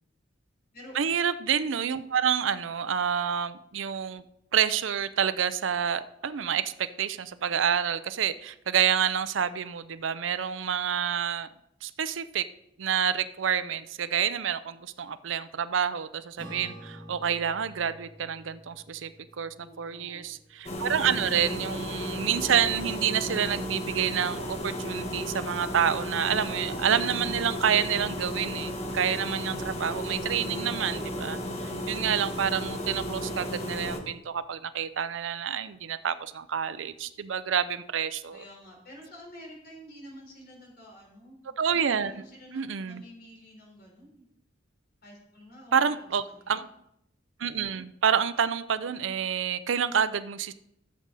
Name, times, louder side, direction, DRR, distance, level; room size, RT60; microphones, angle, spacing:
voice 1, 0.9-4.2 4.5-11.5 11.8-12.4 12.8-19.1 19.4-38.4 41.6-42.1 42.5-43.0 45.7-46.7 47.4-50.5, right 8 dB, 75° right, 13 dB, 0.5 m, -28 dB
Acoustic guitar / Strum, 16.4-21.1, equal, 5° left, 3.3 m, -48 dB
voice 2, 19.5-20.3 38.3-41.6 41.9-44.3 45.0-46.7, equal, 55° left, -1 dB, 4.1 m, -49 dB
sound 1, 20.6-34.0, equal, 35° left, 1.4 m, -34 dB
14.0 x 7.5 x 4.1 m, 0.78 s
head